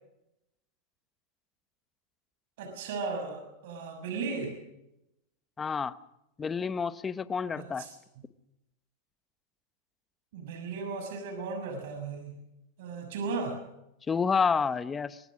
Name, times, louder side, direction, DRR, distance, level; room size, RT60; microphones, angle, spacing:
voice 1, 2.6-4.6 7.5-7.9 10.3-12.3 12.8-13.6, right 4 dB, 70° right, 5 dB, 6.3 m, -36 dB
voice 2, 5.6-5.9 6.4-7.9 14.1-15.2, left 5 dB, 15° left, 15 dB, 0.9 m, -29 dB
24.5 x 19.5 x 6.3 m, 0.87 s
supercardioid pair, 140°, 0 cm